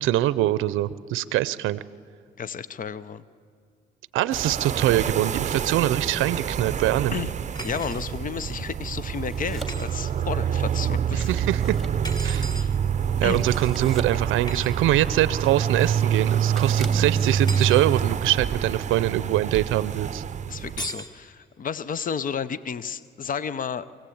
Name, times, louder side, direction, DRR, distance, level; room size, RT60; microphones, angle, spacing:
voice 1, 0.0-1.8 4.1-7.2 11.1-11.7 12.2-12.5 13.2-20.2, right 14 dB, 90° right, 17 dB, 0.6 m, -23 dB
voice 2, 2.4-3.2 7.1-7.3 7.6-11.3 12.5-12.7 13.2-13.4 20.5-24.0, left 7 dB, 45° left, 16 dB, 0.8 m, -32 dB
sound 1, 4.3-20.9, right 8 dB, 35° right, 0.6 m, -27 dB
sound 2, 5.9-17.3, right 1 dB, ahead, 2.5 m, -45 dB
sound 3, 7.6-8.0 9.7-9.9 12.0-12.7 14.5-14.7 17.3-17.9 20.8-21.1, right 1 dB, 20° left, 2.2 m, -36 dB
24.0 x 17.0 x 8.6 m, 2.3 s
cardioid pair, 90°, 20 cm